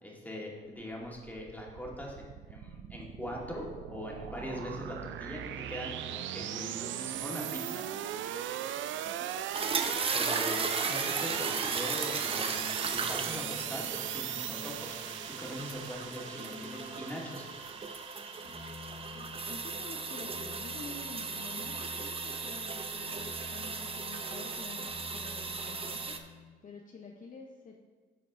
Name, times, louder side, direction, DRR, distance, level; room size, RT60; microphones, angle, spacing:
voice 1, 0.0-7.8 10.1-12.6 12.9-15.0 15.4-17.4, equal, 10° left, -3 dB, 2.1 m, -41 dB
sound 1, 0.9-19.5, right 11 dB, 75° right, 0.4 m, -39 dB
voice 2, 8.9-9.4 19.1-26.2 26.6-27.8, left 4 dB, 40° left, 1 dB, 0.8 m, -48 dB
sound 2, 9.5-26.2, right 4 dB, 30° right, 0.7 m, -36 dB
sound 3, 11.2-17.6 18.4-26.5, left 3 dB, 70° left, 2.7 m, -51 dB
13.0 x 4.6 x 3.7 m, 1.4 s
cardioid pair, 90°, 20 cm